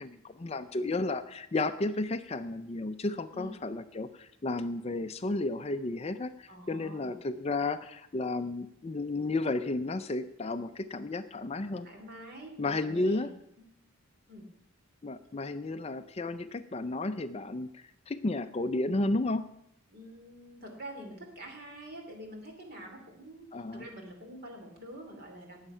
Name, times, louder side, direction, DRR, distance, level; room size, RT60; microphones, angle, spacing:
voice 1, 0.0-11.9 12.6-13.3 15.0-19.4 23.5-23.8, left 2 dB, 30° left, 10 dB, 0.4 m, -33 dB
voice 2, 6.5-7.2 11.8-13.3 13.6-13.7 14.3-14.4 19.9-25.7, right 1 dB, 45° right, 3 dB, 3.0 m, -46 dB
19.0 x 7.3 x 5.6 m, 0.75 s
head